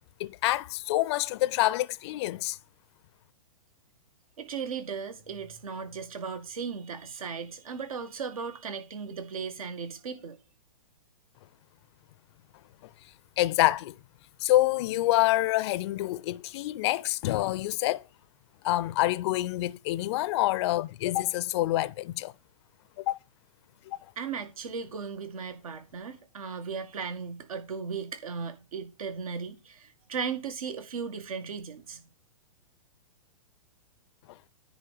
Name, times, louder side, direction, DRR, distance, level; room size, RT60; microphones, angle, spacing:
voice 1, 0.2-2.6 13.4-14.0 14.4-18.0 18.6-22.3 23.0-23.2 23.9-24.0, left 16 dB, 50° left, 0.5 m, -27 dB
voice 2, 4.4-10.4 24.2-32.0, right 6 dB, 75° right, 2.2 m, -36 dB
10.0 x 4.1 x 6.6 m
hypercardioid pair, 130°, 18 cm